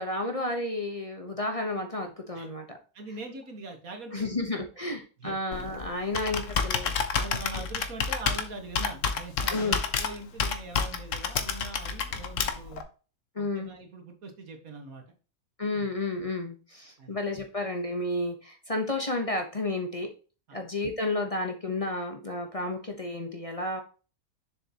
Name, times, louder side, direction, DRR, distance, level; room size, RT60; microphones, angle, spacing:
voice 1, 0.0-2.8 4.1-7.2 9.5-9.8 13.3-13.7 15.6-20.1 20.5-23.8, left 2 dB, 25° left, 3 dB, 1.0 m, -32 dB
voice 2, 2.9-4.3 4.6-4.7 5.2-5.4 6.0-6.1 7.2-12.8 13.4-15.0 15.7-15.9 17.0-17.1 20.5-20.6, right 3 dB, 75° right, 4 dB, 2.0 m, -42 dB
Computer keyboard, 5.5-12.8, left 6 dB, 65° left, 1.3 m, -30 dB
6.9 x 6.9 x 2.9 m, 0.36 s
omnidirectional pair, 1.5 m